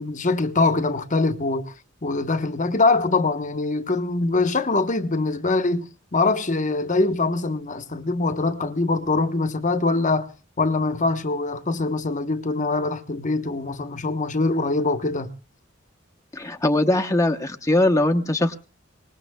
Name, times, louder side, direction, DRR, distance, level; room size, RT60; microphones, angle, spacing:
voice 1, 0.0-1.7 2.0-10.3 10.6-15.3, left 3 dB, 40° left, 1.1 m, -23 dB
voice 2, 16.3-18.5, left 1 dB, 15° left, 0.9 m, -21 dB
24.5 x 20.5 x 2.3 m
head